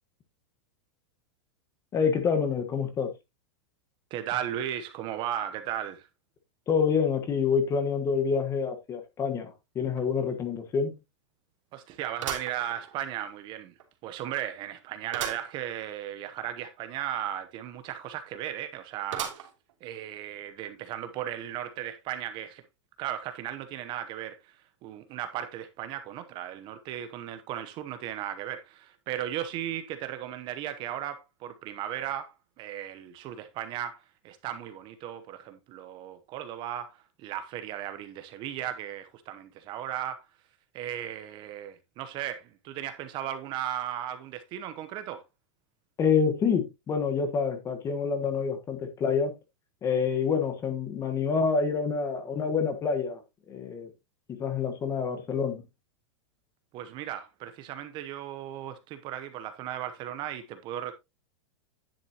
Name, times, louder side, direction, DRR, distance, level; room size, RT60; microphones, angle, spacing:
voice 1, 1.9-3.1 6.7-10.9 46.0-49.3 49.8-53.2 53.5-53.9 54.3-55.6, left 6 dB, 20° left, 1.3 m, -27 dB
voice 2, 4.1-6.1 11.7-13.7 14.0-19.5 19.8-22.6 23.0-40.3 40.7-45.2 56.7-60.9, right 11 dB, 30° right, 0.9 m, -36 dB
sound 1, 10.0-10.1 10.5-10.6 12.2-13.3 13.8-13.9 15.1-15.5 16.0-16.1 16.2-16.3 19.1-19.7 20.3-20.4 21.4-21.5, right 8 dB, 85° right, 3.0 m, -37 dB
10.0 x 7.7 x 2.9 m
supercardioid pair, 160°, 16 cm